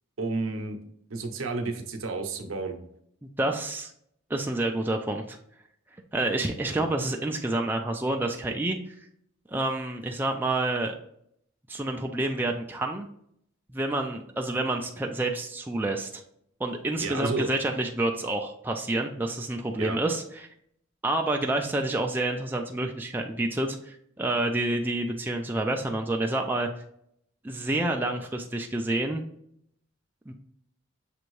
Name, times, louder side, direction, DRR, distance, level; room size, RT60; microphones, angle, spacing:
voice 1, 0.2-0.8 1.1-2.8 6.7-6.9 17.0-17.5 19.8-20.0, right 3 dB, 75° right, 5 dB, 0.7 m, -31 dB
voice 2, 3.2-3.9 4.3-5.4 6.1-8.9 9.5-10.9 11.7-13.1 13.7-16.2 16.6-20.5 21.0-26.7 27.4-29.2 30.3-30.4, right 2 dB, 10° right, 2 dB, 0.3 m, -28 dB
6.7 x 2.6 x 3.1 m, 0.70 s
head